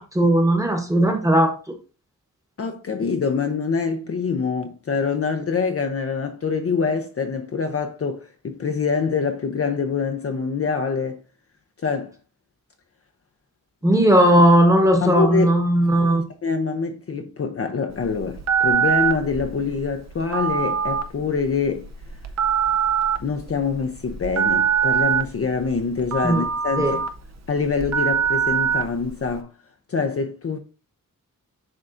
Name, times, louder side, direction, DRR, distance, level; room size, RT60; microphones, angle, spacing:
voice 1, 0.0-1.5 13.8-16.2 26.2-26.4 26.8-27.0, right 1 dB, 10° right, 1.0 m, -17 dB
voice 2, 2.6-11.2 11.8-12.1 15.0-15.5 16.4-21.9 23.2-27.0 27.5-29.5 29.9-30.6, left 5 dB, 45° left, 0.5 m, -25 dB
Telephone, 17.9-29.3, right 7 dB, 50° right, 0.6 m, -24 dB
10.5 x 3.6 x 2.5 m
wide cardioid pair, 155°, 34 cm